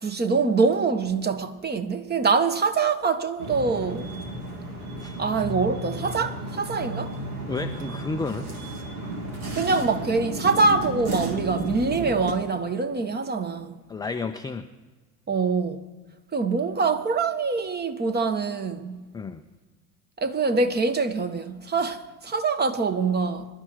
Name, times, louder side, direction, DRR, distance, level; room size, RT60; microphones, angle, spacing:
voice 1, 0.0-4.1 5.2-7.1 9.5-13.8 15.3-15.8 16.3-19.0 20.2-23.5, right 4 dB, 20° right, 1.1 m, -24 dB
sound 1, 3.4-12.3, right 1 dB, 75° right, 2.2 m, -33 dB
voice 2, 7.5-8.5 13.9-14.7 19.1-19.4, left 3 dB, 10° left, 0.5 m, -31 dB
25.5 x 11.5 x 3.1 m
hypercardioid pair, 70°, 44 cm